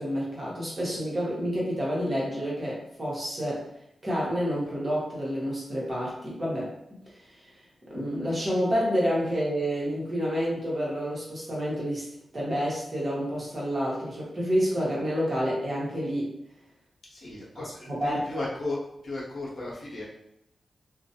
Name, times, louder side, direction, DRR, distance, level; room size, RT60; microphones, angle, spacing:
voice 1, 0.0-3.7 4.0-6.7 7.9-12.0 12.3-16.3 17.9-18.2, equal, 30° right, -5 dB, 0.9 m, -29 dB
voice 2, 17.1-20.0, left 2 dB, 65° left, -5 dB, 0.8 m, -35 dB
2.3 x 2.0 x 2.7 m, 0.78 s
wide cardioid pair, 105°, 0 cm